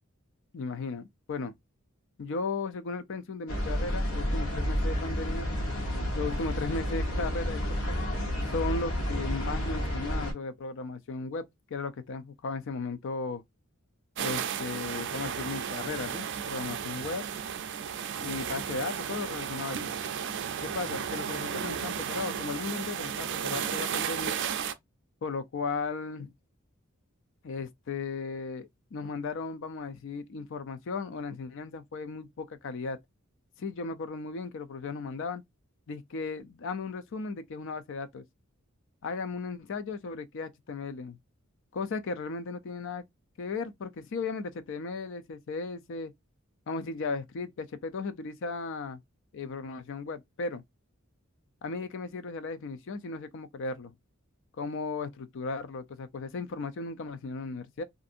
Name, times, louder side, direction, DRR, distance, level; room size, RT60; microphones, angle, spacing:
voice 1, 0.5-1.5 2.2-5.5 5.9-8.0 8.5-11.5 11.7-13.4 14.2-17.2 18.1-19.9 20.6-24.4 25.2-26.3 27.4-33.0 33.6-35.4 35.9-38.2 39.0-41.2 41.7-43.0 43.4-46.1 46.7-49.0 49.3-50.6 51.6-53.9 54.6-57.8, left 4 dB, 60° left, 0.4 m, -36 dB
sound 1, 3.5-10.3, equal, 85° left, 1.0 m, -30 dB
sound 2, 14.2-24.7, right 8 dB, 55° right, 0.4 m, -34 dB
2.6 x 2.5 x 2.5 m
head